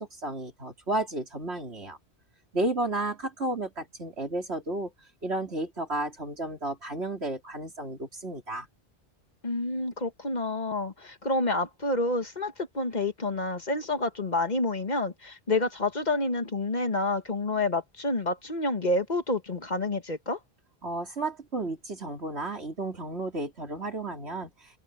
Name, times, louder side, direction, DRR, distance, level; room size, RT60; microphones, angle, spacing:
voice 1, 0.0-2.0 2.5-4.9 5.2-8.7 20.8-24.5, right 2 dB, 85° right, 4.0 m, -32 dB
voice 2, 9.4-20.4, left 2 dB, 45° left, 1.6 m, -28 dB
omnidirectional pair, 1.1 m